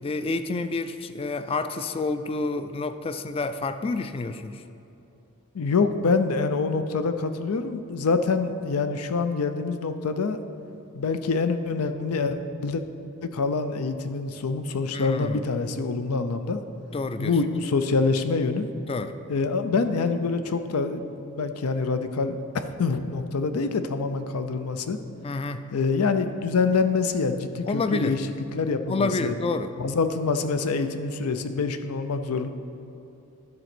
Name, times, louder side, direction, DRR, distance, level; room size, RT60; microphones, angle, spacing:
voice 1, 0.0-4.6 14.9-15.4 16.9-17.4 18.9-19.1 25.2-25.6 27.6-28.2 28.9-29.7, left 3 dB, 25° left, 10 dB, 0.3 m, -29 dB
voice 2, 5.5-10.4 10.9-12.8 13.2-16.6 17.2-18.7 19.3-25.0 25.7-28.3 28.5-29.3 29.8-32.5, left 4 dB, 85° left, 9 dB, 0.5 m, -26 dB
10.5 x 4.0 x 6.0 m, 2.8 s
head